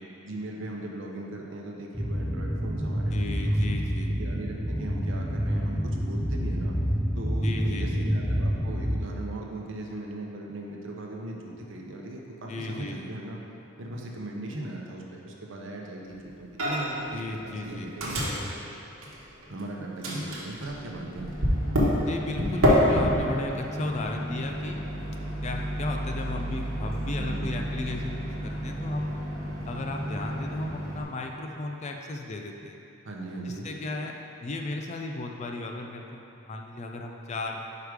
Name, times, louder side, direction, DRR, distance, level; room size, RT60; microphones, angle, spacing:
voice 1, 0.2-3.6 4.1-6.8 7.2-13.4 13.8-18.4 19.5-21.3 27.2-27.6 33.0-33.7, right 2 dB, 65° right, -1 dB, 0.7 m, -38 dB
sound 1, 1.9-9.0, equal, ahead, 0.7 m, -28 dB
voice 2, 3.1-4.2 7.4-8.2 12.5-13.1 17.1-17.9 22.1-24.8 25.4-29.1 29.7-32.8 33.4-37.6, left 2 dB, 35° left, 2 dB, 0.4 m, -35 dB
Microwave oven, 16.6-17.1 17.3-19.6 20.0-31.0, equal, 90° right, 1.1 m, -29 dB
4.9 x 4.8 x 4.8 m, 2.8 s
head